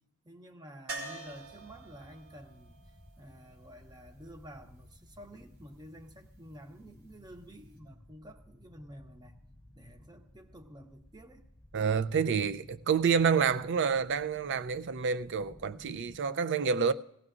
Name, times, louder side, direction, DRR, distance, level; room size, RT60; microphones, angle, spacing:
voice 1, 0.2-2.8 3.2-9.3 9.7-11.5, equal, 20° right, 0.9 m, -51 dB
sound 1, 0.9-4.8 7.4-7.5 7.8-7.9, right 3 dB, 80° right, 2.6 m, -46 dB
sound 2, 1.2-16.2, left 1 dB, 5° left, 1.0 m, -57 dB
voice 2, 11.7-16.9, right 6 dB, 55° right, 0.5 m, -28 dB
18.0 x 17.0 x 2.5 m
head